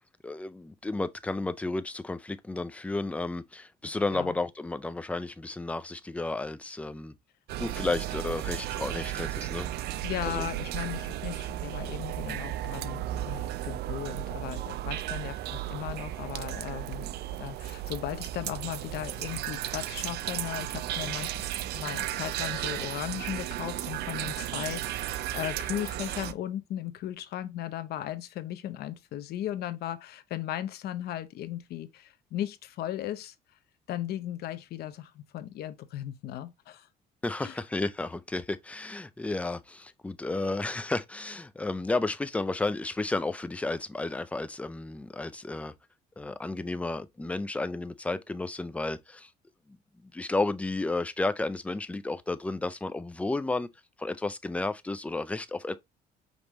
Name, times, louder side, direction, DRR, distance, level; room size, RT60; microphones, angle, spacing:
voice 1, 0.2-7.1 7.6-9.7 10.2-10.5 37.2-45.7 46.2-49.3 50.1-53.7 54.0-55.8, left 2 dB, 10° left, 0.4 m, -32 dB
sound 1, 7.5-26.3, right 13 dB, 70° right, 0.4 m, -34 dB
voice 2, 10.0-17.1 17.4-21.3 21.7-33.3 33.9-36.9 37.4-37.6, left 12 dB, 70° left, 0.7 m, -37 dB
5.2 x 3.1 x 2.9 m
cardioid pair, 110°, 17 cm